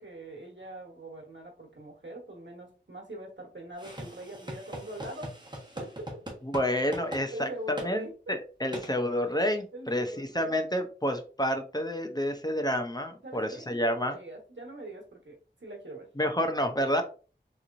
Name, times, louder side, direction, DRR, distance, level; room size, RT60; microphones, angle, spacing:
voice 1, 0.0-5.3 5.7-6.2 7.3-8.3 9.7-10.5 13.2-16.1, right 1 dB, 80° right, 1 dB, 1.1 m, -43 dB
sound 1, 3.8-6.7 6.9-7.2 7.8-7.9 8.7-8.9, right 1 dB, 25° right, 1.3 m, -40 dB
voice 2, 6.4-14.2 16.2-17.0, equal, 20° left, 6 dB, 0.6 m, -29 dB
3.8 x 3.0 x 2.5 m, 0.37 s
wide cardioid pair, 45°, 19 cm